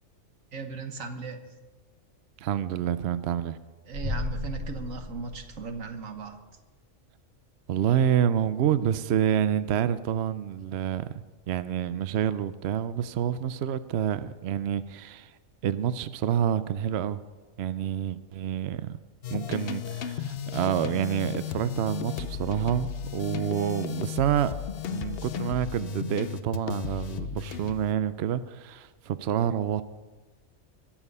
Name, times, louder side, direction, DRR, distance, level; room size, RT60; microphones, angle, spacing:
voice 1, 0.5-1.5 3.9-6.4, right 4 dB, 85° right, 6 dB, 1.6 m, -37 dB
voice 2, 2.4-3.6 7.7-15.3 15.6-17.2 17.6-19.0 19.3-24.5 24.9-29.8, right 9 dB, 65° right, 14 dB, 0.7 m, -28 dB
sound 1, 3.9-6.2, left 1 dB, 25° right, 1.9 m, -35 dB
sound 2, 19.2-27.9, left 9 dB, 55° left, 0.7 m, -34 dB
21.5 x 7.3 x 5.4 m, 1.2 s
omnidirectional pair, 1.3 m